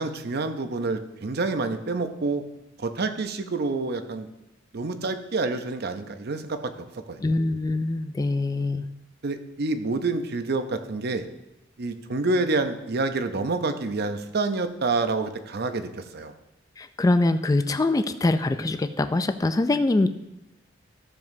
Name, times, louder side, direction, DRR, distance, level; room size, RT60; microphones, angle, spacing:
voice 1, 0.0-2.4 2.8-4.3 4.7-7.4 9.2-11.3 11.8-16.3, right 3 dB, 55° right, 9 dB, 0.6 m, -28 dB
voice 2, 7.2-8.9 16.8-20.1, left 2 dB, 20° left, 9 dB, 0.3 m, -23 dB
13.5 x 7.0 x 2.7 m, 0.90 s
head